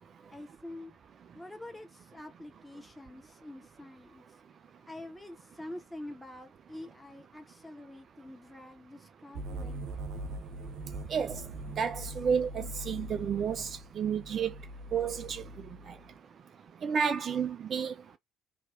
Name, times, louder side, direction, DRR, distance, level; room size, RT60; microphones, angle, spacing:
voice 1, 0.3-1.0 1.3-4.2 4.9-9.8, left 1 dB, 5° left, 1.5 m, -46 dB
sound 1, 9.3-16.1, right 1 dB, 60° right, 0.7 m, -42 dB
voice 2, 11.8-14.5 14.9-15.4 16.8-17.9, right 7 dB, 40° right, 0.3 m, -31 dB
3.5 x 2.8 x 2.8 m
figure-of-eight pair, 50°, 0 cm